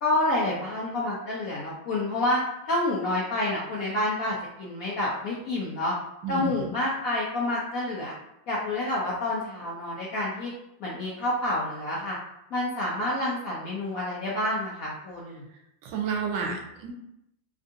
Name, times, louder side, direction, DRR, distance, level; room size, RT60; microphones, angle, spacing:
voice 1, 0.0-2.4 2.6-5.9 6.3-8.1 8.5-10.5 10.8-12.2 12.5-15.4, left 1 dB, 70° left, -6 dB, 0.8 m, -28 dB
voice 2, 6.2-6.7 15.8-16.9, right 5 dB, 85° right, 2 dB, 1.4 m, -31 dB
3.5 x 2.4 x 2.6 m, 0.83 s
omnidirectional pair, 2.1 m